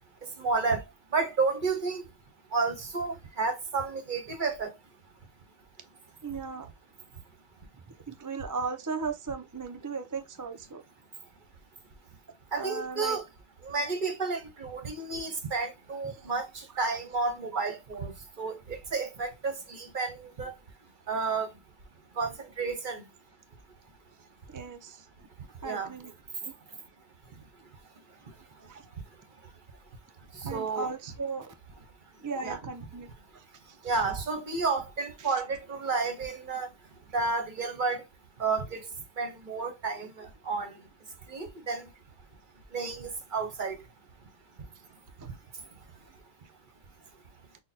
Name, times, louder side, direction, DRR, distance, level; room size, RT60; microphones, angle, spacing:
voice 1, 0.4-0.8 1.1-2.0 2.5-4.7 12.5-13.2 13.6-18.1 18.4-20.5 21.1-21.5 22.2-23.0 25.6-25.9 30.4-30.9 32.4-32.6 33.8-36.7 37.1-38.0 38.4-38.8 39.2-40.7 41.3-41.9 42.7-43.7, right 4 dB, 50° right, 1.1 m, -31 dB
voice 2, 6.2-6.7 7.7-10.8 12.6-13.2 16.0-16.3 17.5-17.6 24.5-25.1 25.6-26.1 26.4-26.5 28.6-28.8 30.4-31.5 32.2-33.4 33.8-33.9 35.2-35.4 45.2-45.3, right 4 dB, 25° right, 0.4 m, -37 dB
6.3 x 2.2 x 2.7 m
omnidirectional pair, 1.1 m